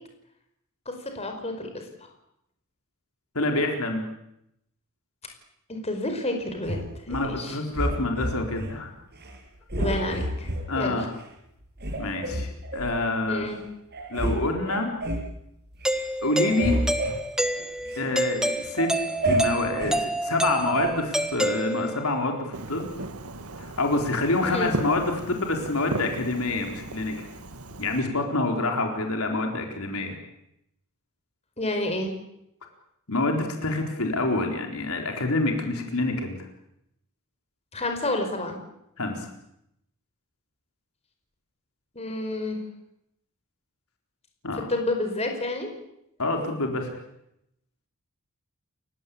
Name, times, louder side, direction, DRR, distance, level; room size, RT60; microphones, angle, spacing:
voice 1, 0.8-1.9 5.7-7.6 9.7-11.1 13.3-13.6 24.4-24.7 31.6-32.1 37.7-38.5 41.9-42.6 44.7-45.7, left 2 dB, 30° left, 4 dB, 5.0 m, -30 dB
voice 2, 3.3-4.1 7.1-8.9 10.7-11.1 12.0-13.5 14.1-14.9 16.2-16.8 18.0-18.9 19.2-22.9 23.6-27.3 27.8-30.2 33.1-36.4 39.0-39.3 44.4-44.7 46.2-46.9, left 2 dB, 75° left, 3 dB, 4.2 m, -27 dB
sound 1, 6.6-7.3 7.7-8.7 9.1-9.4 9.7-10.6 11.2-11.3 11.8-12.9 13.5-13.6 13.9-14.4 14.7-15.3 15.7-16.0 16.3-18.1 18.5-20.0 20.8-20.9, right 1 dB, 50° right, 7.1 m, -29 dB
Doorbell, 15.8-22.2, right 1 dB, 5° right, 1.5 m, -28 dB
Fireworks, 22.5-28.0, right 2 dB, 85° right, 2.2 m, -36 dB
29.5 x 17.0 x 8.7 m, 0.80 s
head